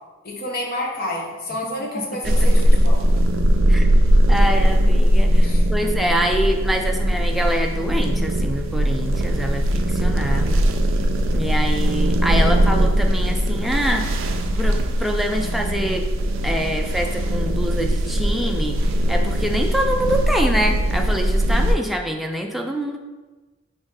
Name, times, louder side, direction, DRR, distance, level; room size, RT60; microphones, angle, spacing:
voice 1, 0.2-3.0 5.4-5.7, left 1 dB, 50° left, -1 dB, 0.8 m, -29 dB
voice 2, 1.8-2.5 3.7-3.9 4.3-10.6 11.3-16.1 16.4-18.8 19.1-23.0, equal, ahead, 2 dB, 0.3 m, -25 dB
sound 1, 2.2-21.7, equal, 70° right, 0.4 m, -19 dB
5.1 x 2.7 x 3.7 m, 1.2 s
head